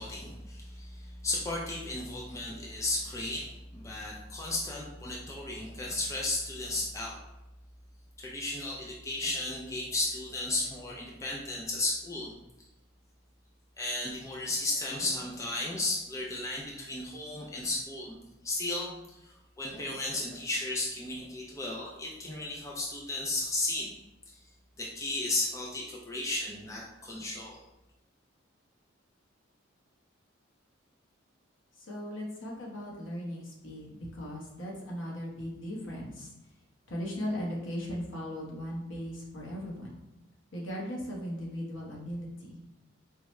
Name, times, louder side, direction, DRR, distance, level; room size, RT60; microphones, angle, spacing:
voice 1, 0.0-7.2 8.2-12.4 13.8-18.2 18.4-23.9 24.3-24.4 24.8-27.6, left 2 dB, 15° left, -3 dB, 0.4 m, -34 dB
voice 2, 31.7-36.3 36.9-39.9 40.5-42.6, equal, 70° left, -3 dB, 0.9 m, -38 dB
4.6 x 2.1 x 3.0 m, 0.98 s
head